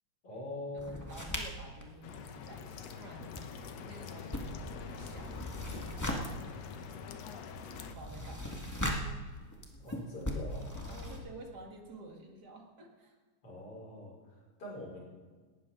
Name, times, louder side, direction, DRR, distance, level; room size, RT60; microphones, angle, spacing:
voice 1, 0.2-1.0 9.8-10.7 13.4-15.0, left 1 dB, 45° left, -4 dB, 6.4 m, -43 dB
voice 2, 0.7-7.3 7.9-9.2 9.9-10.0 10.9-13.2, right 2 dB, 35° right, 2 dB, 2.0 m, -51 dB
sound 1, 0.8-2.9 3.2-11.2, left 1 dB, 10° left, 0.8 m, -40 dB
sound 2, 2.0-7.9, left 6 dB, 65° left, 2.0 m, -45 dB
18.5 x 13.0 x 3.8 m, 1.4 s
omnidirectional pair, 3.6 m